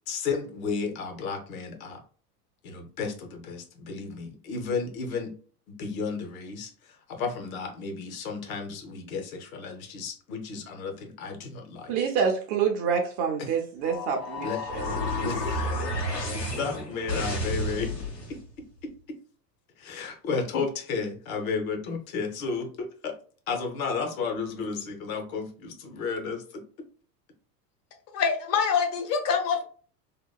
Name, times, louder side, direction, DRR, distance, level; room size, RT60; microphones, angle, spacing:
voice 1, 0.1-2.0 2.6-5.3 5.7-6.7 7.1-11.9 13.4-13.5 14.4-14.7 15.1-15.6 16.3-18.0 18.3-18.4 18.8-18.9 19.8-23.2 23.5-26.6, left 5 dB, 60° left, 4 dB, 0.8 m, -33 dB
voice 2, 11.9-14.9, right 6 dB, 35° right, 3 dB, 0.4 m, -27 dB
sound 1, 13.8-18.4, left 1 dB, 80° left, 1.3 m, -31 dB
voice 3, 28.1-29.6, left 6 dB, 30° left, 5 dB, 0.6 m, -25 dB
2.9 x 2.2 x 2.2 m, 0.41 s
figure-of-eight pair, 85°, 49 cm